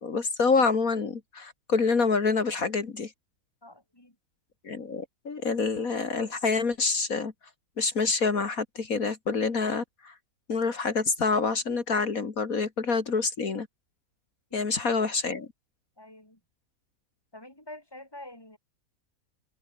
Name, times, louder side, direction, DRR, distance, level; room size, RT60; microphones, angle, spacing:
voice 1, 0.0-3.1 4.6-7.3 7.8-10.1 10.5-13.7 14.5-15.5, left 4 dB, 65° left, 2.6 m, -27 dB
voice 2, 3.6-4.1 14.5-14.7 16.0-16.4 17.3-18.6, left 1 dB, 15° left, 5.8 m, -47 dB
omnidirectional pair, 1.6 m